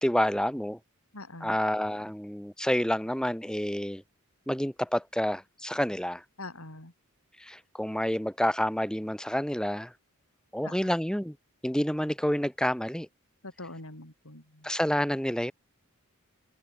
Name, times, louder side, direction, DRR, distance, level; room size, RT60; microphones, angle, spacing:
voice 1, 0.0-0.8 1.4-4.0 4.5-6.2 7.4-9.9 10.5-11.3 11.6-13.1 14.6-15.5, equal, 5° left, 1.7 m, -28 dB
voice 2, 1.1-1.6 6.4-6.9 10.6-10.9 13.4-14.7, left 2 dB, 70° left, 5.6 m, -44 dB
open air
head